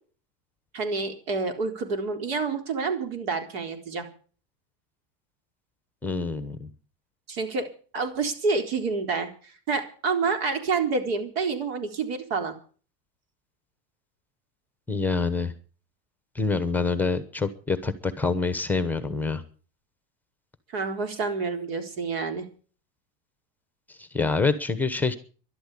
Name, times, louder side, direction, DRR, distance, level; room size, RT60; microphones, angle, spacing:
voice 1, 0.7-4.1 7.3-7.7 7.9-12.5 20.7-22.5, right 4 dB, 90° right, 6 dB, 4.0 m, -28 dB
voice 2, 6.0-6.7 14.9-15.5 16.3-19.4 24.0-25.2, left 3 dB, 5° left, 11 dB, 0.9 m, -26 dB
12.5 x 12.0 x 8.3 m, 0.41 s
supercardioid pair, 165°, 29 cm